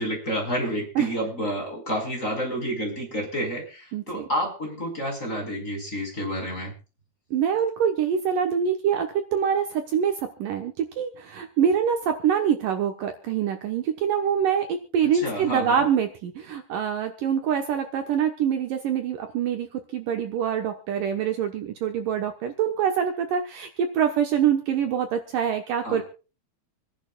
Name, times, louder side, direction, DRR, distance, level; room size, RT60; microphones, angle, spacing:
voice 1, 0.0-6.7 15.0-15.9 25.8-26.0, equal, 20° left, 0 dB, 4.9 m, -29 dB
voice 2, 3.9-4.3 7.3-26.0, right 8 dB, 70° right, 5 dB, 2.6 m, -25 dB
27.0 x 11.0 x 2.4 m, 0.32 s
omnidirectional pair, 4.4 m